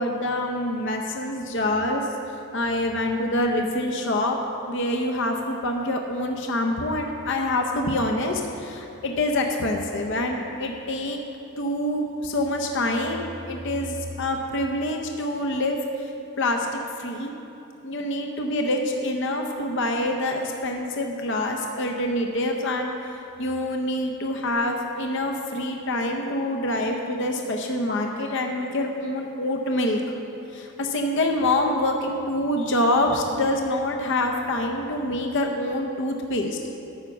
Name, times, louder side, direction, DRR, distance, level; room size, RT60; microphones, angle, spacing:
voice 1, 0.0-2.1 2.5-4.4 4.7-11.2 11.6-16.1 16.4-16.7 17.0-17.3 17.8-30.0 30.5-36.6, left 1 dB, 55° left, 2 dB, 0.7 m, -26 dB
11.5 x 6.0 x 7.0 m, 2.9 s
head